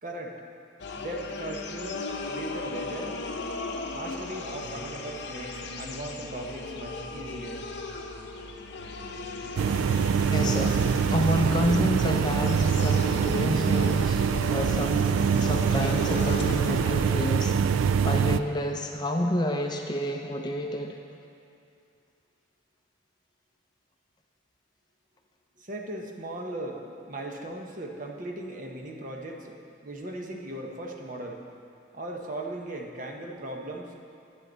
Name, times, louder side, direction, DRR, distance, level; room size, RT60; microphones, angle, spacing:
voice 1, 0.0-0.4 1.0-3.2 3.9-7.6 25.6-31.4 31.9-33.9, right 1 dB, 40° right, 1 dB, 1.0 m, -38 dB
sound 1, 0.8-17.3, left 3 dB, 60° left, 0.7 m, -37 dB
sound 2, 9.6-18.4, right 6 dB, 90° right, 0.3 m, -24 dB
voice 2, 10.3-10.8 11.1-15.1 15.4-21.0, left 1 dB, 20° left, 3 dB, 0.5 m, -29 dB
11.0 x 10.0 x 4.0 m, 2.6 s
head